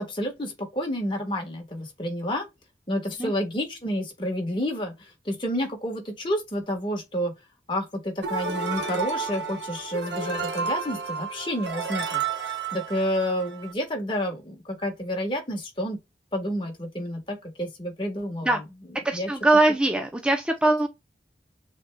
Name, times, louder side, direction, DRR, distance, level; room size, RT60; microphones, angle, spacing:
voice 1, 0.0-2.5 2.9-7.3 7.7-16.0 16.3-18.5 19.1-19.3, equal, 30° left, 1.4 m, -30 dB
sound 1, 8.2-13.7, right 5 dB, 90° right, 1.2 m, -31 dB
voice 2, 19.0-20.9, right 2 dB, 5° right, 0.5 m, -21 dB
6.4 x 3.4 x 2.2 m
head